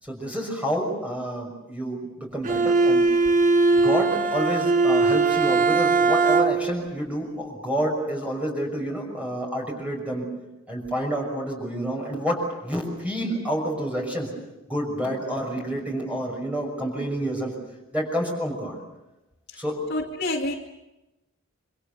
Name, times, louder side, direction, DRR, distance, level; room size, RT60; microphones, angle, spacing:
voice 1, 0.0-3.1 3.7-10.3 10.7-14.3 14.7-17.5 17.9-18.8 19.6-19.8, equal, 5° right, 0 dB, 6.1 m, -29 dB
Bowed string instrument, 2.4-6.8, right 3 dB, 40° right, 1.2 m, -20 dB
voice 2, 19.9-20.5, left 2 dB, 60° left, -3 dB, 2.4 m, -28 dB
27.0 x 25.5 x 6.9 m, 0.97 s
head